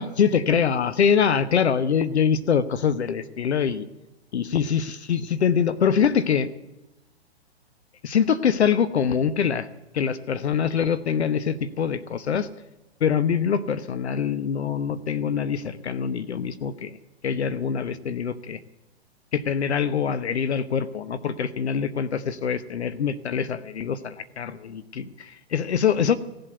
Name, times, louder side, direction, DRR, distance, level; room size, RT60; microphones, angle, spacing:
voice 1, 0.0-3.8 4.3-6.5 8.0-9.7 9.9-12.5 13.0-17.0 17.2-18.6 19.3-26.2, left 7 dB, 75° left, 14 dB, 1.0 m, -24 dB
16.5 x 7.9 x 7.9 m, 1.0 s
hypercardioid pair, 135°, 33 cm